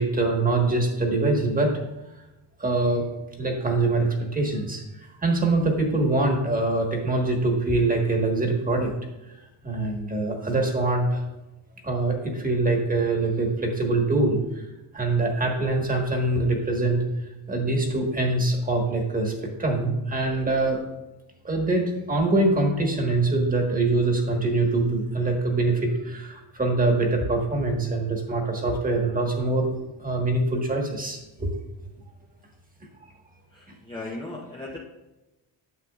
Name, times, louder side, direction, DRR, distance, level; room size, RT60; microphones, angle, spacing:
voice 1, 0.0-1.7 2.6-3.1 3.4-8.9 9.6-11.2 11.8-14.6 14.9-17.1 17.5-20.8 21.4-31.5, right 2 dB, 20° right, 1 dB, 1.5 m, -24 dB
voice 2, 33.5-34.8, left 2 dB, 10° left, -2 dB, 0.7 m, -37 dB
9.8 x 7.5 x 2.4 m, 0.99 s
cardioid pair, 140°, 45 cm